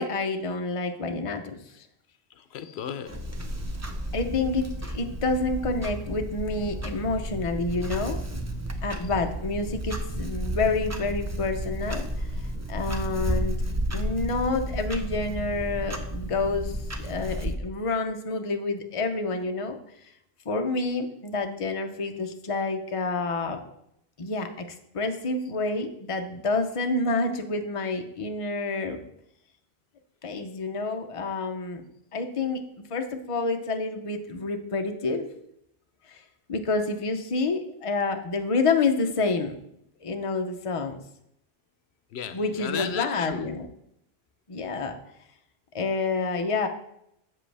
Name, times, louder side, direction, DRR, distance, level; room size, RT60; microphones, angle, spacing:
voice 1, 0.0-1.4 4.1-12.3 12.7-13.6 13.9-19.8 20.5-23.6 24.2-24.5 24.9-29.0 30.2-31.8 32.1-32.6 32.9-35.3 36.1-36.2 36.5-39.5 40.0-41.0 42.3-43.7 44.5-45.0 45.7-46.7, left 3 dB, 35° left, 0.7 m, -28 dB
voice 2, 2.4-3.4 42.1-43.5, left 8 dB, 80° left, 0.8 m, -35 dB
Clock, 3.1-17.6, right 1 dB, 20° right, 0.5 m, -32 dB
7.5 x 7.5 x 3.4 m
omnidirectional pair, 1.1 m